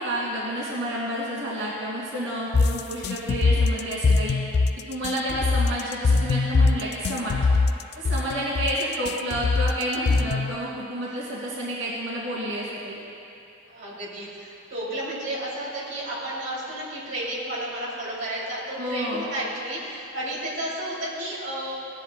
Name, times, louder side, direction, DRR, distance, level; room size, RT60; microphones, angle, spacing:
voice 1, 0.0-4.4 4.9-7.4 7.9-13.0 18.8-19.3, right 1 dB, 90° right, -7 dB, 2.6 m, -30 dB
sound 1, 2.5-10.6, left 3 dB, 55° left, 0.3 m, -22 dB
voice 2, 13.7-21.7, right 1 dB, 65° right, -7 dB, 2.8 m, -32 dB
18.0 x 10.5 x 2.2 m, 2.7 s
head